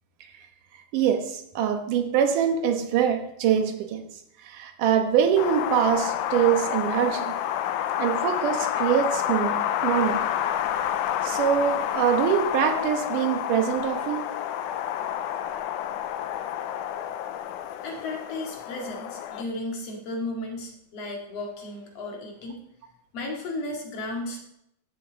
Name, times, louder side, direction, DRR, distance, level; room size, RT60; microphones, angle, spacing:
voice 1, 0.9-4.0 4.4-7.4 8.0-10.2 11.2-14.3, right 8 dB, 90° right, 7 dB, 2.7 m, -24 dB
Wind, 5.4-19.4, left 10 dB, 85° left, 2.2 m, -29 dB
voice 2, 17.8-22.6 23.1-24.4, left 2 dB, 55° left, 1 dB, 2.9 m, -34 dB
15.0 x 7.2 x 4.1 m, 0.74 s
omnidirectional pair, 3.6 m